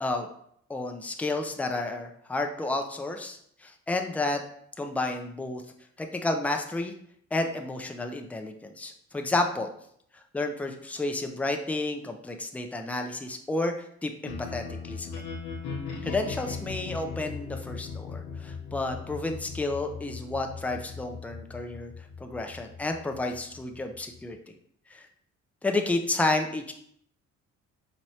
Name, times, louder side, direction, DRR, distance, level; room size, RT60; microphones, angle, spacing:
voice 1, 0.7-4.4 4.8-5.6 6.0-6.9 7.3-9.7 10.1-15.2 16.0-21.9 22.2-24.5 24.9-25.1 25.6-26.7, left 2 dB, 5° left, 4 dB, 0.4 m, -31 dB
sound 1, 14.2-24.3, left 5 dB, 85° left, 0.9 m, -39 dB
4.6 x 3.0 x 2.8 m, 0.67 s
cardioid pair, 90°, 30 cm